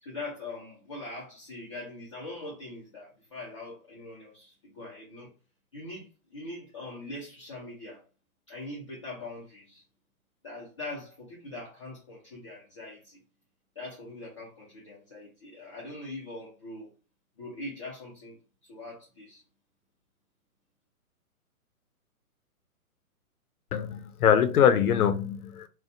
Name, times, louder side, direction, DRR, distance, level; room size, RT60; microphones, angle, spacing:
voice 1, 0.0-5.3 5.7-8.0 8.5-9.8 10.4-13.2 13.8-16.9 17.4-18.4 18.7-19.4, left 2 dB, 25° left, 0.4 m, -42 dB
voice 2, 23.7-25.7, left 8 dB, 75° left, 0.6 m, -23 dB
2.5 x 2.2 x 2.5 m
hypercardioid pair, 135°, 45 cm